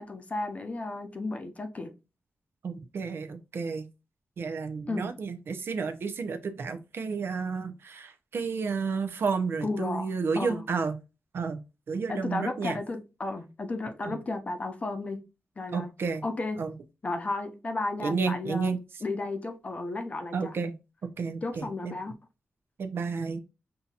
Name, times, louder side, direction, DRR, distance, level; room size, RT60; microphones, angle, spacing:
voice 1, 0.0-1.9 4.9-5.1 9.6-10.6 12.1-15.2 15.6-15.9 16.2-16.6 17.0-18.7 19.0-20.5 21.4-22.1, left 2 dB, 35° left, 0.6 m, -33 dB
voice 2, 2.6-3.9 4.4-11.0 11.3-11.6 11.9-12.8 14.0-14.1 15.7-16.2 16.6-16.7 18.0-18.8 20.3-20.7 21.2-21.9 22.8-23.4, right 5 dB, 70° right, 0.6 m, -31 dB
5.5 x 2.7 x 2.4 m
wide cardioid pair, 140°, 4 cm